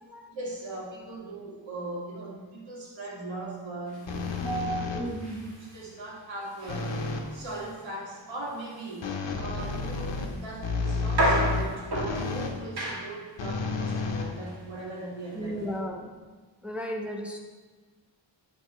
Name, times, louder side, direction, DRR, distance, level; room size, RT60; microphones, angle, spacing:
voice 1, 0.3-4.1 4.7-5.1 5.6-7.0 7.3-15.7, right 2 dB, 70° right, -5 dB, 2.1 m, -39 dB
sound 1, 3.9-15.8, right 1 dB, 55° right, 2.2 m, -35 dB
sound 2, 4.1-5.3 6.7-7.3 9.0-12.6 13.4-14.9, left 4 dB, 70° left, 0.9 m, -31 dB
voice 2, 4.4-5.5 15.3-16.2 16.6-17.4, right 1 dB, 5° right, 0 dB, 0.7 m, -34 dB
8.6 x 5.5 x 3.1 m, 1.3 s
wide cardioid pair, 135°, 46 cm